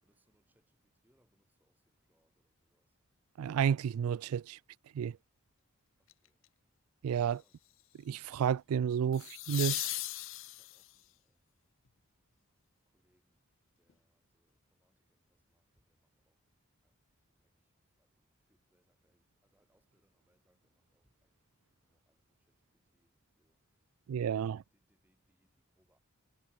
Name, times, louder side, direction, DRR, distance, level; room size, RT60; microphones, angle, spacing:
voice 1, 0.0-3.0 6.0-6.4 7.4-7.6 10.4-11.7 12.9-13.4 13.8-16.4 16.8-17.7 18.0-21.4 21.7-23.6 24.0-24.1 24.3-26.0, equal, 10° right, 5.3 m, -78 dB
voice 2, 3.4-4.6 5.0-5.2 7.0-7.4 8.1-9.9 24.1-24.6, right 8 dB, 85° right, 0.3 m, -31 dB
sound 1, 6.1-6.4 9.1-11.0 13.9-14.0, left 17 dB, 65° left, 0.9 m, -38 dB
head